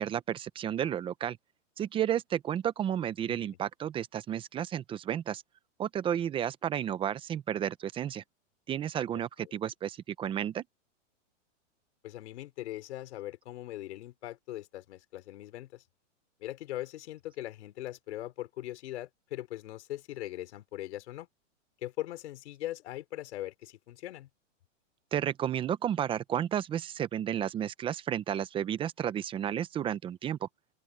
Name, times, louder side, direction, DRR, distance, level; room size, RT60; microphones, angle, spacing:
voice 1, 0.0-1.4 1.8-5.4 5.8-8.2 8.7-10.6 25.1-30.5, right 10 dB, 15° right, 0.7 m, -32 dB
voice 2, 12.0-15.8 16.4-21.3 21.8-24.3, left 14 dB, 60° left, 5.1 m, -40 dB
open air
hypercardioid pair, 150°, 38 cm